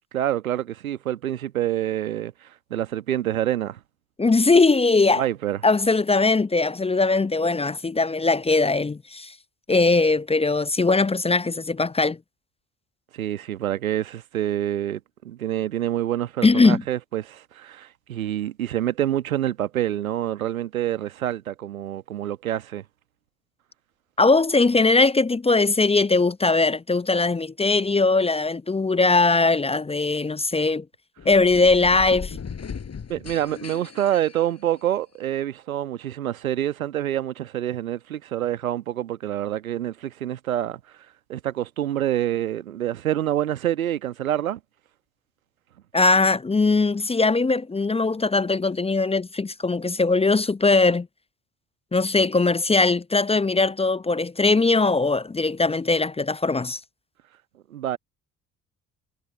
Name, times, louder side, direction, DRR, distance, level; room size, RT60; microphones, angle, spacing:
voice 1, 0.1-2.3 2.7-3.8 5.2-5.6 13.1-15.0 15.2-22.8 33.1-40.8 41.3-44.6 57.7-58.0, right 12 dB, 80° right, 1.3 m, -27 dB
voice 2, 4.2-5.2 5.6-9.3 9.7-12.2 16.4-16.8 24.2-30.8 31.3-32.4 45.9-51.1 51.9-56.8, left 3 dB, 15° left, 0.7 m, -20 dB
sound 1, 31.2-35.2, left 6 dB, 40° left, 6.6 m, -38 dB
figure-of-eight pair, 45°, 41 cm